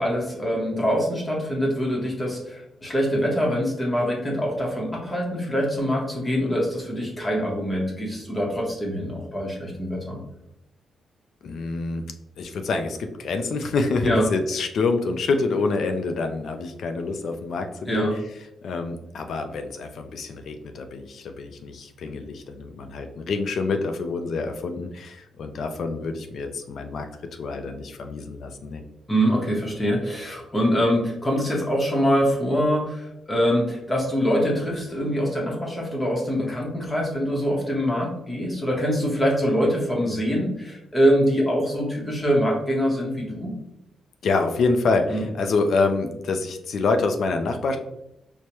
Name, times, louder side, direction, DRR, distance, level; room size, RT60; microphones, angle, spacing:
voice 1, 0.0-10.2 14.0-14.2 17.9-18.1 29.1-43.5 45.1-45.2, equal, 20° left, -2 dB, 0.8 m, -24 dB
voice 2, 11.4-12.0 12.4-18.2 18.6-27.1 27.4-28.8 44.2-47.8, left 3 dB, 65° left, 6 dB, 0.4 m, -26 dB
4.6 x 2.1 x 2.9 m, 0.83 s
cardioid pair, 120°, 0 cm